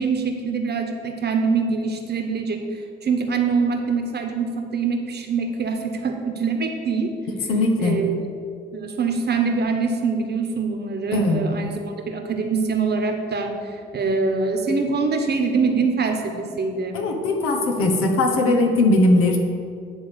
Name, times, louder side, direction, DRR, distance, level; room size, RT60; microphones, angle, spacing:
voice 1, 0.0-2.6 3.0-7.1 7.8-8.2 8.7-11.7 12.1-13.5 13.9-17.0, right 4 dB, 50° right, 4 dB, 1.2 m, -24 dB
voice 2, 7.5-8.0 11.1-11.4 16.9-19.4, left 2 dB, 85° left, 2 dB, 1.1 m, -19 dB
10.0 x 3.6 x 6.7 m, 2.3 s
supercardioid pair, 55°, 21 cm